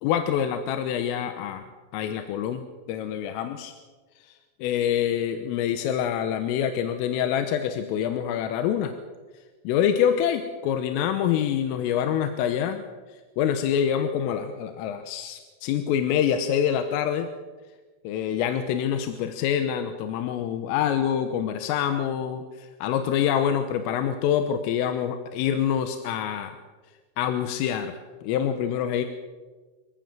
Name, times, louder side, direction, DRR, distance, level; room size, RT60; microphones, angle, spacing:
voice 1, 0.0-1.7 1.9-2.6 2.9-3.7 4.2-8.9 9.7-12.8 13.1-17.3 18.1-26.5 27.2-27.9 28.2-29.1, left 9 dB, 85° left, 8 dB, 3.7 m, -26 dB
28.0 x 15.0 x 7.6 m, 1.4 s
omnidirectional pair, 5.8 m